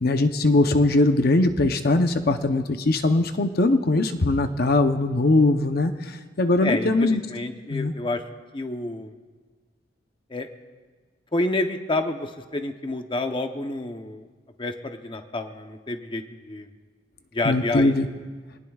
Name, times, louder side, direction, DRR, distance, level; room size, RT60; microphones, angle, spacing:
voice 1, 0.0-7.2 7.7-7.9 17.4-18.1, left 2 dB, 60° left, 7 dB, 0.8 m, -21 dB
voice 2, 6.6-8.2 8.5-9.1 10.3-10.5 11.3-14.3 14.6-16.7 17.3-17.9, left 2 dB, 30° left, 6 dB, 0.8 m, -29 dB
26.0 x 19.0 x 2.4 m, 1.4 s
head